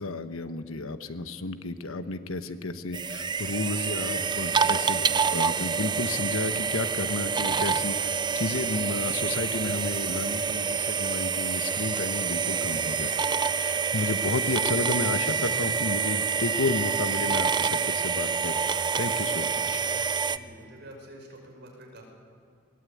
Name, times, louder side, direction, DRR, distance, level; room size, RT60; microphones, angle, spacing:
voice 1, 0.0-13.1 13.6-19.8, left 2 dB, 85° left, 10 dB, 1.2 m, -32 dB
sound 1, 2.9-20.4, right 6 dB, 20° right, 0.5 m, -27 dB
voice 2, 20.2-22.0, right 1 dB, 55° right, 1 dB, 5.7 m, -47 dB
21.0 x 18.5 x 8.6 m, 2.2 s
head